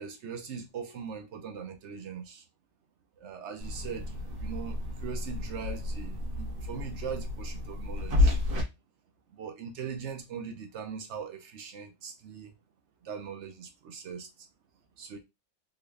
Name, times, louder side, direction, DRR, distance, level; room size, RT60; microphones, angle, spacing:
voice 1, 0.0-2.4 3.2-8.4 9.3-12.5 13.0-14.3 15.0-15.2, right 6 dB, 60° right, 0.8 m, -40 dB
sound 1, 3.6-8.6, left 2 dB, 85° right, 1.7 m, -31 dB
3.8 x 2.2 x 3.3 m
omnidirectional pair, 1.7 m